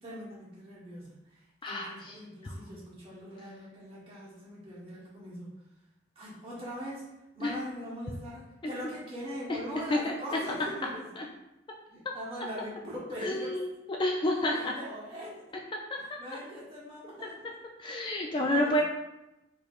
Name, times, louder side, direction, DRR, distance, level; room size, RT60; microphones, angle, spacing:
voice 1, 0.0-5.5 6.1-7.1 7.3-11.2 11.9-13.5 14.5-15.4 15.9-17.4 18.3-18.8, equal, 30° right, -7 dB, 1.4 m, -41 dB
voice 2, 1.6-2.1 2.4-2.6 7.4-7.5 9.5-9.6 9.9-10.1 11.2-11.3 13.2-13.7 14.0-14.7 17.8-18.8, left 1 dB, 25° left, 0 dB, 0.3 m, -29 dB
4.6 x 3.0 x 2.5 m, 0.95 s
head